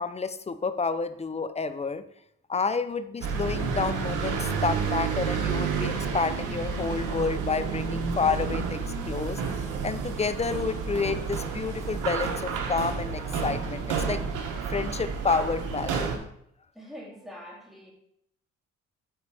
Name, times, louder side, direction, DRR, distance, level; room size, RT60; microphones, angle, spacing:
voice 1, 0.0-2.0 2.5-9.4 9.8-14.2 14.7-16.1, left 4 dB, 20° left, 12 dB, 0.5 m, -29 dB
sound 1, 3.2-16.2, right 5 dB, 85° right, 1.2 m, -30 dB
voice 2, 16.7-17.9, equal, ahead, -4 dB, 2.8 m, -44 dB
8.2 x 4.4 x 4.8 m, 0.74 s
cardioid pair, 90°, 30 cm